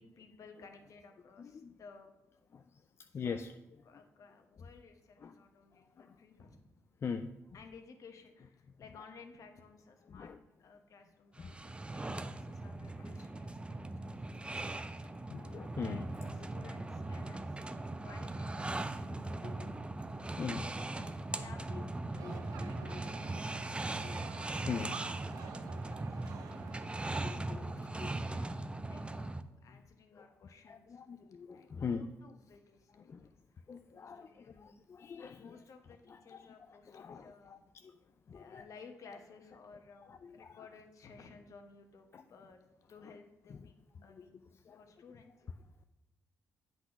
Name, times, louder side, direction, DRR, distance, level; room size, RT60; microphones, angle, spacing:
voice 1, 0.0-2.1 3.1-3.2 3.8-6.7 7.5-10.3 10.6-19.8 20.2-20.7 21.3-23.9 24.6-25.0 25.4-26.2 27.6-31.0 31.5-33.4 33.9-34.8 35.4-37.6 38.3-42.6 42.9-43.7 44.0-44.4 44.7-45.5, left 4 dB, 65° left, 5 dB, 1.0 m, -57 dB
voice 2, 1.4-1.7 2.5-2.6 3.1-3.8 5.2-5.3 6.0-6.1 7.0-7.3 10.1-10.4 11.4-11.6 14.1-14.2 15.3-16.0 18.7-19.7 20.1-21.2 21.7-21.8 22.2-23.0 24.0-25.0 26.8-27.7 28.0-28.4 30.2-30.3 30.7-32.1 33.1-33.3 33.7-35.6 36.1-36.5 36.9-37.6 37.8-38.0 38.3-38.6 40.1-40.5 42.1-42.2 44.2-44.3 44.7-44.8, left 6 dB, 45° left, 8 dB, 0.4 m, -43 dB
sound 1, 11.4-29.4, right 2 dB, 20° right, 0.5 m, -39 dB
sound 2, 22.1-27.4, right 9 dB, 90° right, 0.4 m, -51 dB
8.1 x 4.0 x 5.8 m, 0.96 s
supercardioid pair, 65°, 6 cm